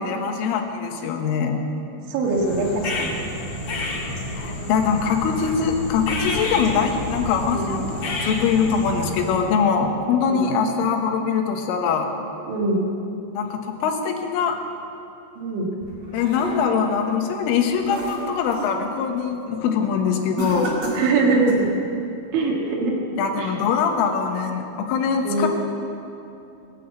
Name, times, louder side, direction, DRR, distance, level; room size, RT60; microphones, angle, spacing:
voice 1, 0.0-1.6 4.3-12.1 13.4-14.6 16.1-20.8 23.2-25.5, left 6 dB, 85° left, 3 dB, 3.8 m, -23 dB
voice 2, 2.1-3.2 7.5-7.8 10.2-10.4 12.5-12.8 15.4-15.7 20.9-21.7 22.3-22.9 23.4-23.6 25.3-25.5, right 3 dB, 70° right, -1 dB, 4.0 m, -22 dB
squirrel short, 2.2-9.5, left 1 dB, 45° left, 1.9 m, -29 dB
sound 1, 15.8-16.9 17.4-18.8 19.2-19.5 20.4-21.7, right 3 dB, 45° right, 1.9 m, -31 dB
20.0 x 8.3 x 8.1 m, 2.8 s
omnidirectional pair, 5.7 m